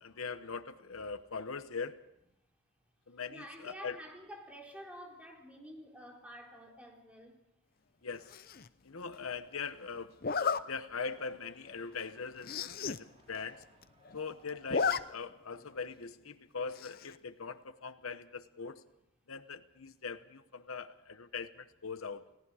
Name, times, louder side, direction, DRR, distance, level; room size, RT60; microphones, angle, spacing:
voice 1, 0.0-2.0 3.1-4.0 8.0-8.3 8.8-10.4 10.7-13.6 14.1-18.8 19.3-22.3, left 5 dB, 90° left, 12 dB, 1.0 m, -41 dB
voice 2, 3.3-7.4, equal, 5° right, 0 dB, 3.8 m, -49 dB
Zipper (clothing), 8.3-8.7 10.2-10.6 11.2-11.3 11.7-11.8 12.0-12.1 12.4-13.0 13.3-13.4 13.6-14.2 14.5-15.0 15.3-15.4 16.8-17.1, left 5 dB, 45° left, 0.7 m, -33 dB
sound 1, 10.1-15.1, right 1 dB, 30° right, 3.3 m, -58 dB
29.5 x 18.5 x 4.9 m, 0.84 s
head